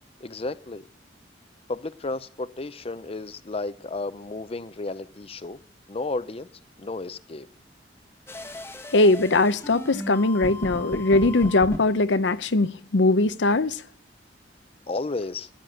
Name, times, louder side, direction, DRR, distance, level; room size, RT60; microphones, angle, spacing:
voice 1, 0.2-0.8 1.7-5.6 5.9-6.5 6.8-7.5 14.9-15.5, left 3 dB, 30° left, 0.6 m, -32 dB
sound 1, 8.3-11.8, left 1 dB, 15° left, 1.2 m, -36 dB
voice 2, 8.9-13.8, left 2 dB, 75° left, 0.8 m, -21 dB
15.5 x 10.5 x 7.8 m
head